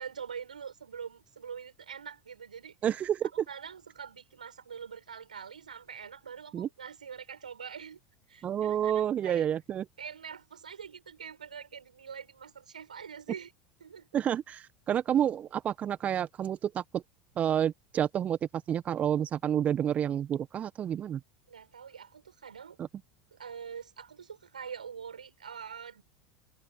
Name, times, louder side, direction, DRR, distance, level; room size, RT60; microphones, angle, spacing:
voice 1, 0.0-2.8 3.5-8.0 8.3-9.5 10.0-13.5 13.8-14.2 21.5-22.8 23.3-26.0, right 7 dB, 80° right, 4.8 m, -44 dB
voice 2, 2.8-3.3 6.5-6.7 8.4-9.8 14.1-17.0 17.4-21.2 22.8-22.9, right 9 dB, 35° right, 1.5 m, -29 dB
figure-of-eight pair, 80°, 4 cm